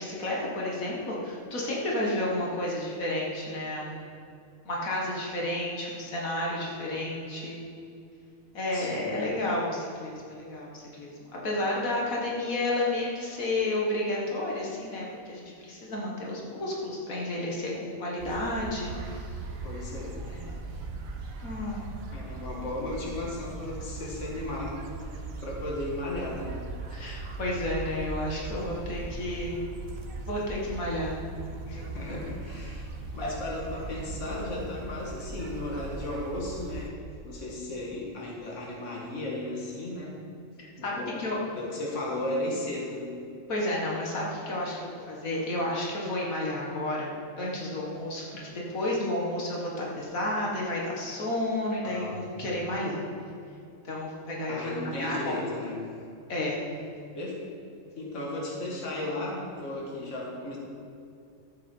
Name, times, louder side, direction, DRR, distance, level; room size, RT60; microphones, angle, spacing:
voice 1, 0.0-4.1 4.7-7.7 8.5-19.3 20.2-20.9 21.4-22.1 22.5-22.7 26.9-29.6 30.3-31.2 31.8-32.0 33.2-33.3 40.8-41.4 43.5-53.0 53.8-55.4 56.3-56.6, left 1 dB, 90° left, -3 dB, 2.2 m, -31 dB
voice 2, 8.7-9.1 19.6-20.2 22.1-25.1 25.4-26.5 31.7-32.9 33.1-37.0 37.2-40.2 40.6-41.3 41.5-43.2 51.8-52.2 54.5-55.9 57.1-57.4 58.0-60.6, left 1 dB, 60° left, -3 dB, 2.0 m, -35 dB
sound 1, 18.2-36.9, right 3 dB, 85° right, 1.4 m, -39 dB
13.5 x 8.1 x 4.5 m, 2.5 s
omnidirectional pair, 1.4 m